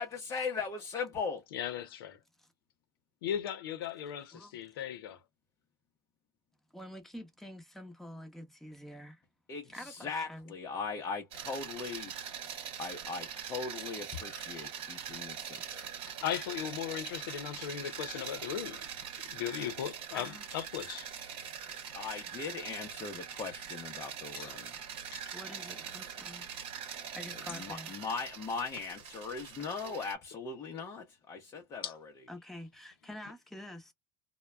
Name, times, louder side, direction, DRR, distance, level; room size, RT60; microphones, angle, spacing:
voice 1, 0.0-1.4 9.5-12.1 12.8-15.9 21.9-24.7 27.3-32.1, left 5 dB, 30° left, 0.7 m, -39 dB
voice 2, 1.5-2.2 3.2-5.2 16.2-18.9 19.2-21.1 24.4-24.5 25.1-25.2 31.8-31.9, left 10 dB, 75° left, 0.7 m, -37 dB
voice 3, 6.7-9.2 9.7-10.5 20.1-20.5 25.3-26.6 27.1-27.9 32.3-33.9, left 1 dB, ahead, 0.9 m, -47 dB
sound 1, 11.3-30.1, right 8 dB, 50° right, 0.9 m, -43 dB
2.2 x 2.1 x 3.1 m
hypercardioid pair, 100°, 12 cm